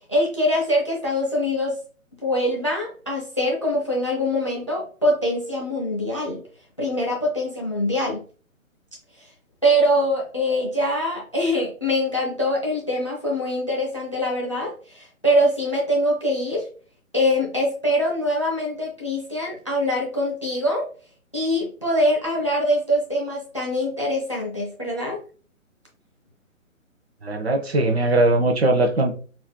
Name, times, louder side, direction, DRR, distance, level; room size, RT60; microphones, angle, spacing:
voice 1, 0.1-1.8 2.2-6.4 6.8-8.2 9.6-16.7 17.1-20.9 21.3-25.2, equal, 25° left, -1 dB, 0.4 m, -23 dB
voice 2, 27.2-29.1, right 2 dB, 50° right, 4 dB, 0.6 m, -20 dB
4.2 x 2.5 x 2.2 m, 0.40 s
figure-of-eight pair, 140°, 41 cm